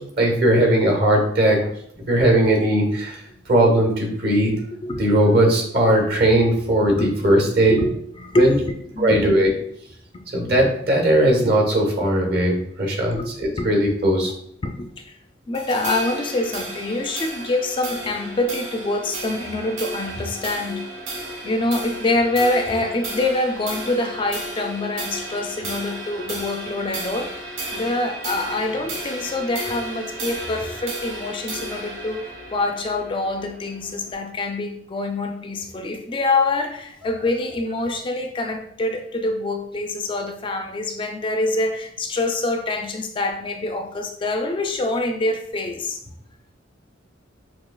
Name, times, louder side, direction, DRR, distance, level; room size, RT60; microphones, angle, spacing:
voice 1, 0.2-1.6 2.1-3.2 3.5-4.5 5.0-7.8 8.3-8.5 9.0-9.5 10.3-14.3, right 1 dB, 55° right, 1 dB, 1.1 m, -18 dB
voice 2, 6.9-7.4 7.7-9.4 13.1-13.7 14.6-15.2 15.5-20.8 21.4-46.0, left 2 dB, 25° left, 4 dB, 0.3 m, -25 dB
sound 1, 15.5-34.1, right 1 dB, 80° right, 1.1 m, -34 dB
5.9 x 2.7 x 2.3 m, 0.69 s
head